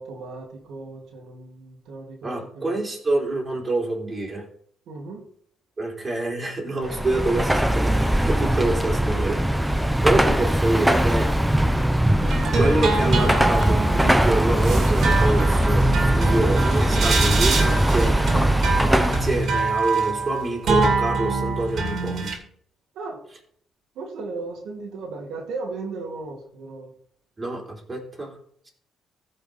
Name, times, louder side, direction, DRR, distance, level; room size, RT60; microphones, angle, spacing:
voice 1, 0.0-2.8 4.9-5.2 22.9-23.2 24.0-26.9, right 3 dB, 85° right, 0 dB, 2.2 m, -36 dB
voice 2, 2.2-4.5 5.8-9.4 10.0-11.3 12.6-18.2 18.9-22.3 27.4-28.4, right 2 dB, 25° right, -1 dB, 3.8 m, -26 dB
Car passing by / Traffic noise roadway noise / Engine, 6.8-19.5, right 1 dB, 5° right, 0.8 m, -20 dB
sound 1, 12.2-22.3, right 3 dB, 65° right, 2.6 m, -25 dB
15.0 x 5.5 x 4.2 m, 0.62 s
cardioid pair, 90°, 0 cm